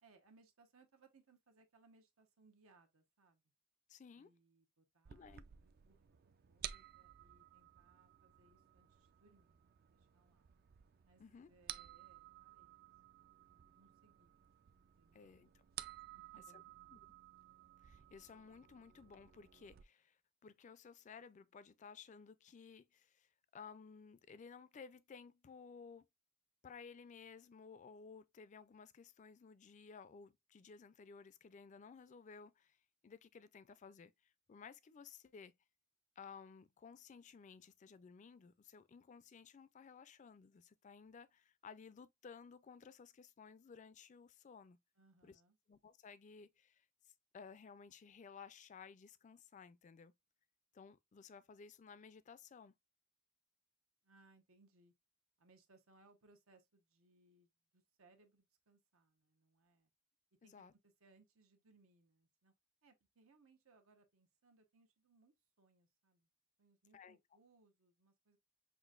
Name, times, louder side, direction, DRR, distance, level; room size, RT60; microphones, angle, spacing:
voice 1, 0.0-3.4 4.2-6.2 6.5-10.5 11.0-14.4 14.8-15.6 16.1-17.1 44.9-45.6 54.0-54.9 55.4-59.9 60.4-60.5 60.8-62.5 62.8-66.3 66.6-68.4, right 3 dB, 90° right, 1.0 m, -71 dB
voice 2, 3.9-4.3 5.1-5.4 11.2-11.5 15.1-15.5 16.9-17.0 17.8-26.1 26.6-32.8 33.0-35.5 36.2-44.8 45.2-45.4 45.7-46.9 47.3-50.1 50.7-52.7 60.4-60.7 66.9-67.2, left 5 dB, 35° left, 0.3 m, -57 dB
sound 1, 5.0-19.8, right 11 dB, 45° right, 0.3 m, -55 dB
5.9 x 2.5 x 2.4 m
head